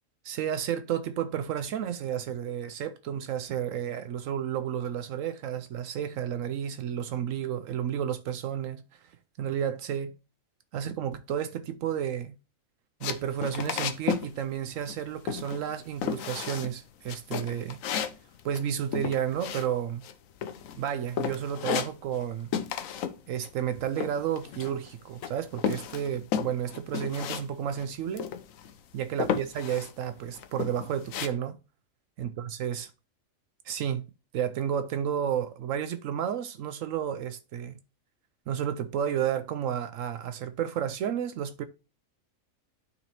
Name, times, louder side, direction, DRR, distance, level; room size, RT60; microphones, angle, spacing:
voice 1, 0.2-8.8 9.4-10.1 10.7-12.4 13.0-17.8 18.4-20.0 20.8-22.5 23.3-28.3 28.9-31.6 32.2-32.9 33.7-34.0 34.3-37.8 38.5-41.6, right 9 dB, 75° right, 0.9 m, -31 dB
sound 1, 13.0-14.3 14.6-15.0 15.3-15.7 16.0-16.7 17.1-20.1 20.4-20.9 21.2-22.3 22.5-23.2 23.4-24.9 25.2-27.5 27.7-27.8 28.2-28.7 29.2-29.9 30.3-31.3, left 8 dB, 80° left, 1.1 m, -33 dB
12.0 x 4.0 x 2.9 m
omnidirectional pair, 1.4 m